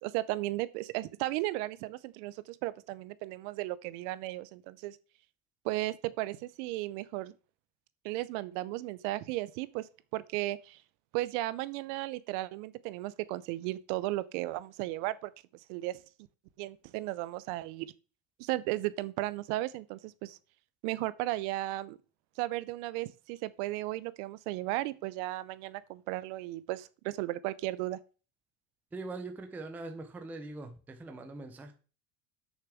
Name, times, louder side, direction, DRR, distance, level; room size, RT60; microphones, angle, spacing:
voice 1, 0.0-5.0 5.6-7.3 8.0-10.8 11.1-15.3 15.7-16.0 16.6-17.9 18.4-20.4 20.8-22.0 22.4-28.0, right 17 dB, 60° right, 0.7 m, -35 dB
voice 2, 28.9-31.7, right 3 dB, 5° right, 0.4 m, -42 dB
6.7 x 6.6 x 6.1 m
cardioid pair, 170°, 41 cm